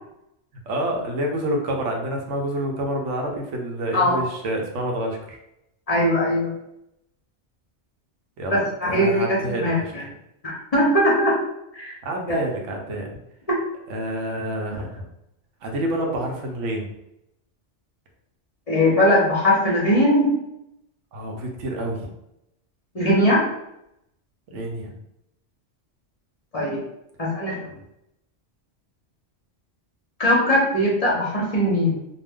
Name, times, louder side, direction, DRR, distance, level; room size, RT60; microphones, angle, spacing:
voice 1, 0.7-5.4 8.4-9.9 12.0-13.1 13.9-15.1 15.6-16.9 21.1-22.1 24.5-24.9, right 1 dB, 85° right, 1 dB, 1.0 m, -28 dB
voice 2, 5.9-6.5 8.5-10.0 10.4-11.4 11.7-11.9 12.3-12.4 18.7-20.3 22.9-23.4 26.5-26.8 27.2-27.7 30.2-32.0, left 1 dB, 40° left, -5 dB, 0.6 m, -20 dB
2.5 x 2.1 x 3.4 m, 0.83 s
omnidirectional pair, 1.2 m